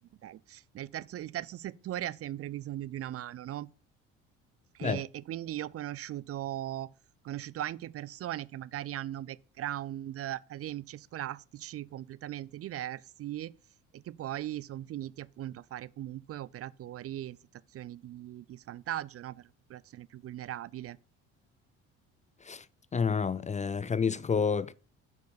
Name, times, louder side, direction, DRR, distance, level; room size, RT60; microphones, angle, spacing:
voice 1, 0.2-3.7 4.7-6.9 7.2-13.5 13.9-17.4 17.7-21.0, right 13 dB, 45° right, 0.5 m, -39 dB
voice 2, 22.9-24.7, left 5 dB, 20° left, 0.4 m, -29 dB
7.9 x 5.4 x 7.0 m
supercardioid pair, 75°, 33 cm